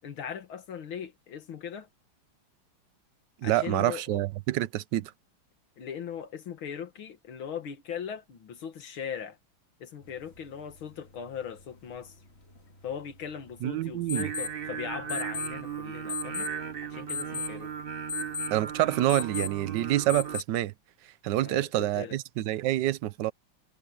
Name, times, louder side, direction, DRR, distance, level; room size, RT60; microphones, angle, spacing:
voice 1, 0.0-1.9 3.4-4.2 5.8-9.4 9.8-12.1 12.8-16.5 16.8-17.7 21.4-22.2, left 8 dB, 75° left, 2.4 m, -39 dB
voice 2, 3.4-5.1 13.6-14.3 18.5-20.7 21.2-23.3, right 14 dB, 70° right, 1.2 m, -27 dB
sound 1, 10.0-20.4, left 5 dB, 30° left, 2.5 m, -40 dB
Singing, 14.2-20.4, right 7 dB, 30° right, 1.2 m, -37 dB
omnidirectional pair, 2.3 m